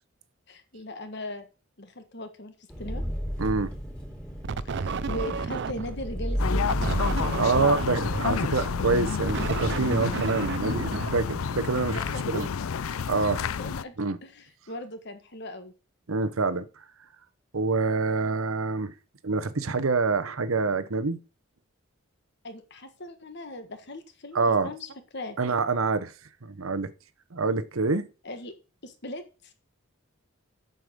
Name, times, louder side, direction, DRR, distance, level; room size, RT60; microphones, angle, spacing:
voice 1, 0.5-1.4 1.8-2.5 2.8-3.0 4.7-6.8 11.9-12.4 13.5-13.9 14.2-15.7 22.4-25.4 28.2-28.5 28.8-29.5, left 1 dB, 55° left, 1.5 m, -39 dB
Engine, 2.7-9.8, equal, 5° left, 2.7 m, -33 dB
voice 2, 3.4-3.7 7.4-12.0 12.3-12.5 13.1-13.4 14.0-14.2 16.1-16.7 17.5-18.9 19.2-21.2 24.3-24.7 25.4-26.1 26.4-26.9 27.3-28.1, right 4 dB, 85° right, 0.9 m, -26 dB
sound 1, 4.4-6.1 6.7-11.8, right 5 dB, 55° right, 0.4 m, -33 dB
sound 2, 6.4-13.8, left 6 dB, 85° left, 0.5 m, -30 dB
7.9 x 6.8 x 5.2 m
head